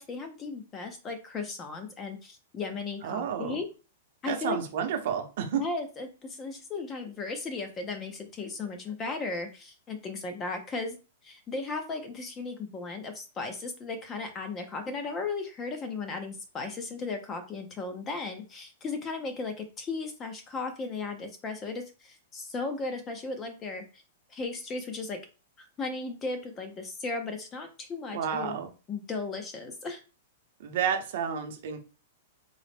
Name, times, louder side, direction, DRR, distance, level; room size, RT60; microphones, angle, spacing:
voice 1, 0.0-3.7 4.2-4.6 5.5-11.0 11.2-24.0 24.3-25.2 25.6-28.5 28.9-30.0, left 3 dB, 15° left, 6 dB, 0.4 m, -36 dB
voice 2, 3.0-3.6 4.3-5.6 28.1-28.7 30.6-31.8, right 8 dB, 50° right, 5 dB, 0.7 m, -30 dB
3.7 x 2.0 x 3.3 m, 0.32 s
supercardioid pair, 170°, 0 cm